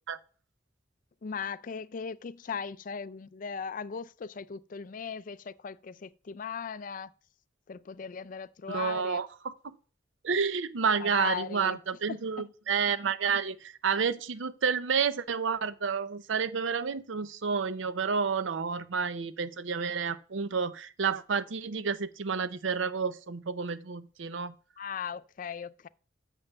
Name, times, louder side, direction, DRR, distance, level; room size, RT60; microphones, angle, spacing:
voice 1, 1.2-7.1 7.7-9.2 11.0-11.8 12.4-12.5 24.8-25.9, left 6 dB, 45° left, 0.4 m, -38 dB
voice 2, 8.7-9.7 10.2-24.5, right 6 dB, 90° right, 0.6 m, -30 dB
6.9 x 5.4 x 7.0 m
head